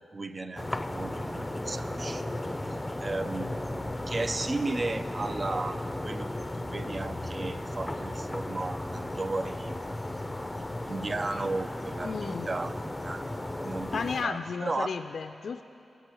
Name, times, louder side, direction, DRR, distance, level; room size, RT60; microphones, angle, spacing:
voice 1, 0.0-2.4 3.0-9.8 10.9-14.9, right 2 dB, 45° right, 11 dB, 0.5 m, -35 dB
sound 1, 0.6-14.2, left 1 dB, 15° left, 0.5 m, -35 dB
voice 2, 12.0-12.5 13.9-15.6, left 5 dB, 75° left, 8 dB, 0.3 m, -33 dB
20.5 x 8.2 x 3.0 m, 2.8 s
cardioid pair, 45°, 0 cm